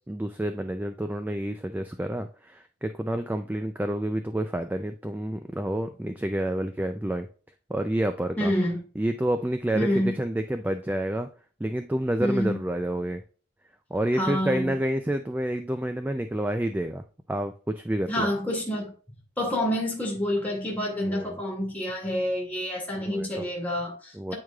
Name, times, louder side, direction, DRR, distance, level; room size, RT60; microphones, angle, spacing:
voice 1, 0.1-7.3 7.7-8.5 9.0-11.3 11.6-13.2 13.9-17.0 17.3-18.3 21.0-21.4 23.0-23.4 24.1-24.3, right 1 dB, 10° right, 0.3 m, -29 dB
voice 2, 8.4-8.8 9.7-10.2 12.2-12.6 14.1-14.7 18.1-18.9 19.4-24.4, equal, 10° left, 2.1 m, -28 dB
8.9 x 4.8 x 2.3 m
head